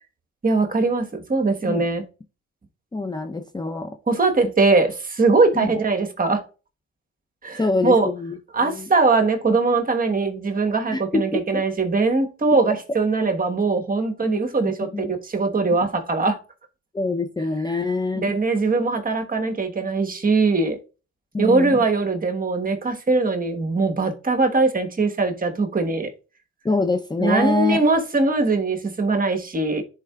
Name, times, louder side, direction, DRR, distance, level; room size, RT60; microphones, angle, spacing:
voice 1, 0.4-2.0 4.1-6.4 7.4-8.1 8.5-16.4 17.7-17.8 18.1-20.8 21.4-26.1 27.2-29.8, right 3 dB, 30° right, 1.3 m, -21 dB
voice 2, 2.9-3.9 5.6-5.7 7.6-8.9 10.9-11.6 14.2-14.4 14.8-15.1 16.9-18.3 21.3-21.8 26.6-27.8, left 3 dB, 15° left, 0.6 m, -25 dB
10.5 x 4.5 x 2.3 m
cardioid pair, 90°, 30 cm